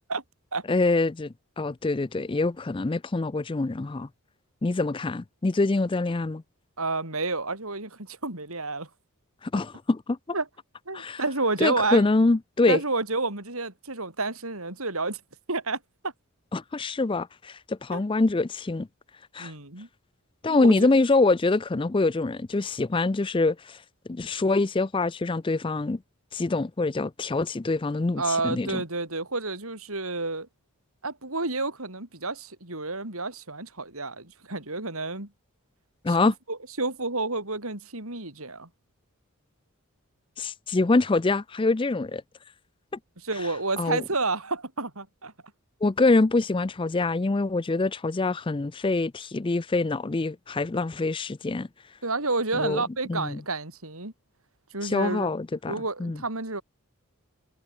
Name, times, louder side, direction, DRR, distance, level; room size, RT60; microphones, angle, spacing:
voice 1, 0.7-4.1 4.6-6.4 9.4-10.2 10.9-11.2 11.6-12.8 16.5-18.9 19.3-19.5 20.4-23.8 24.1-26.0 26.3-28.8 36.0-36.3 40.4-42.2 43.8-44.0 45.8-51.7 52.5-52.8 53.1-53.4 54.8-56.2, left 3 dB, 20° left, 0.4 m, -25 dB
voice 2, 6.8-8.9 10.3-10.5 10.9-12.1 12.7-15.2 15.5-16.1 17.9-18.0 19.4-19.9 20.5-20.9 28.2-30.5 31.0-35.3 36.1-38.7 43.2-45.3 52.0-54.1 54.7-55.3 55.7-56.6, right 3 dB, 75° right, 5.8 m, -30 dB
head